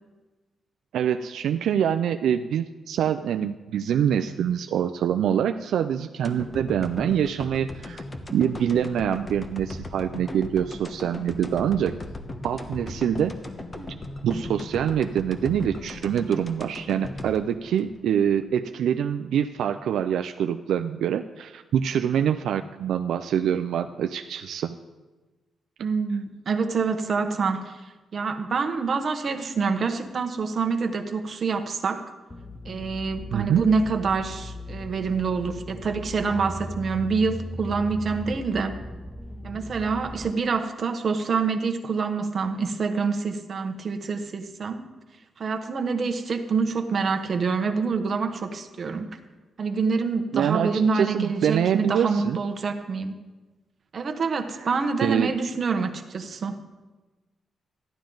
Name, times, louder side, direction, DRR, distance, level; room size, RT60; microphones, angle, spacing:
voice 1, 0.9-8.0 8.3-12.0 12.4-13.3 14.2-24.8 33.3-33.6 50.3-52.4 55.0-55.3, right 9 dB, 85° right, 8 dB, 0.4 m, -25 dB
sound 1, 6.2-18.5 18.8-18.9, left 2 dB, 30° left, 1.0 m, -38 dB
voice 2, 25.8-27.8 28.1-32.0 32.6-38.8 39.4-44.8 45.4-49.2 49.6-53.1 53.9-56.6, right 5 dB, 45° right, 5 dB, 1.0 m, -26 dB
sound 2, 32.3-40.3, left 1 dB, 15° left, 0.7 m, -38 dB
13.5 x 11.5 x 3.9 m, 1.2 s
cardioid pair, 110°, 0 cm